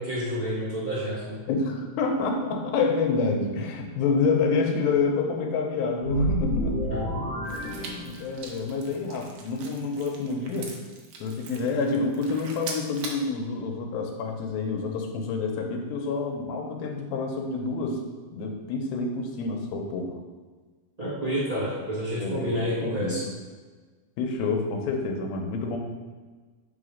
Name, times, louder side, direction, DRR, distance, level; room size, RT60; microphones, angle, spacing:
voice 1, 0.0-1.4 6.9-7.0 21.0-23.2, equal, 30° right, -10 dB, 0.7 m, -29 dB
voice 2, 1.5-6.8 7.6-10.7 11.2-18.0 18.3-20.2 22.2-23.2 24.2-25.8, left 4 dB, 80° left, 3 dB, 2.5 m, -28 dB
sound 1, 6.0-8.5, equal, 55° left, 1.3 m, -28 dB
sound 2, 7.4-13.3, right 4 dB, 75° right, 1.8 m, -42 dB
4.9 x 4.6 x 5.1 m, 1.4 s
omnidirectional pair, 4.3 m